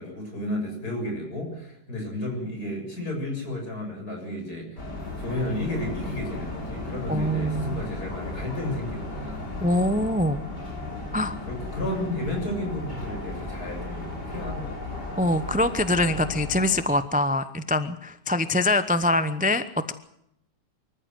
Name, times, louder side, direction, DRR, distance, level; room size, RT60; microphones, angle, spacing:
voice 1, 0.0-4.9 5.2-9.7 10.4-10.7 11.1-14.8, left 1 dB, 65° left, 2 dB, 7.7 m, -32 dB
sound 1, 4.8-16.9, left 2 dB, 85° left, 6.5 m, -35 dB
voice 2, 7.1-7.8 9.6-10.4 11.1-11.4 15.2-19.9, left 1 dB, 10° right, 12 dB, 0.6 m, -24 dB
24.5 x 14.5 x 7.8 m, 0.77 s
omnidirectional pair, 1.7 m